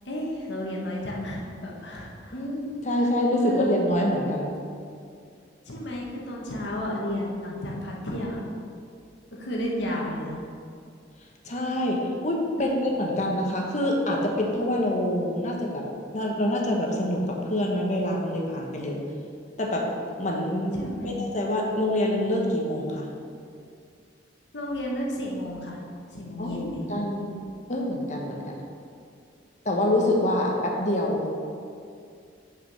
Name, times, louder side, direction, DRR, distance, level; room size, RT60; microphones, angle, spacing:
voice 1, 0.0-2.4 3.4-3.9 5.7-8.4 9.4-10.4 12.6-12.8 20.7-21.2 24.5-25.8 26.1-26.8, left 1 dB, 70° left, -3 dB, 1.4 m, -32 dB
voice 2, 2.3-4.5 11.4-15.8 16.1-19.0 19.6-19.9 20.2-23.1 26.4-27.3 27.7-28.6 29.6-31.3, left 1 dB, 40° left, 0 dB, 1.1 m, -26 dB
6.3 x 5.0 x 6.1 m, 2.3 s
head